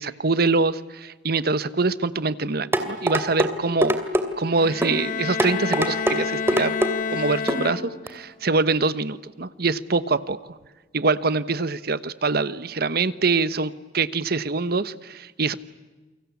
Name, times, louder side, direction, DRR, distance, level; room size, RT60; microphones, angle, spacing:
voice 1, 0.0-4.0 4.4-6.8 7.1-10.6 10.9-15.5, right 3 dB, 60° right, 15 dB, 1.1 m, -24 dB
sound 1, 2.7-3.5 3.8-4.3 4.8-5.0 5.4-6.2 6.5-6.9 7.5-7.7 8.1-8.2, right 1 dB, 15° right, 2.6 m, -22 dB
Bowed string instrument, 4.6-8.2, left 6 dB, 50° left, 1.1 m, -29 dB
29.5 x 24.0 x 8.4 m, 1.2 s
head